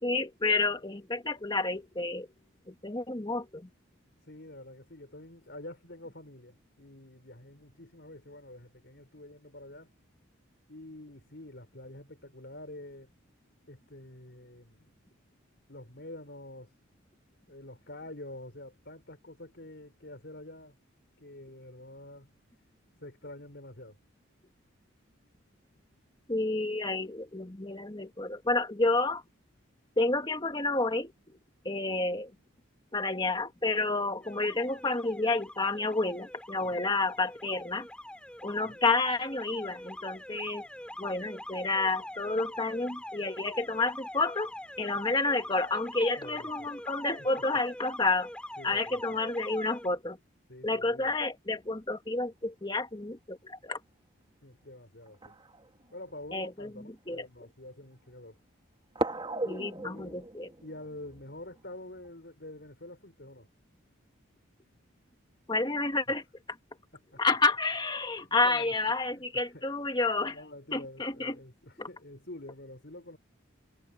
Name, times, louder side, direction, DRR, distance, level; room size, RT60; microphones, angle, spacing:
voice 1, 0.0-2.3 2.7-3.7 26.3-29.2 30.0-31.4 31.7-32.3 32.9-37.9 38.4-40.7 41.0-44.5 44.8-48.3 48.6-50.2 50.6-53.8 56.3-57.2 59.4-60.5 65.5-66.2 67.2-70.4 70.7-71.4 71.8-71.9, left 3 dB, 20° left, 2.0 m, -30 dB
voice 2, 4.2-9.9 10.7-13.1 13.7-14.9 15.7-16.7 17.5-20.8 21.2-22.3 23.0-24.0 36.7-36.9 38.7-38.8 46.2-46.7 47.2-47.3 48.6-49.2 50.5-51.1 54.4-55.3 55.9-58.4 59.4-60.2 60.6-63.5 66.1-66.2 66.9-67.2 68.2-68.7 69.0-69.6 70.1-73.2, left 1 dB, 55° left, 4.7 m, -47 dB
Alarm, 34.2-49.9, left 1 dB, 5° left, 3.9 m, -44 dB
sound 1, 53.7-53.8 55.0-56.3 57.1-57.2 58.9-62.1, right 2 dB, 25° right, 2.5 m, -38 dB
head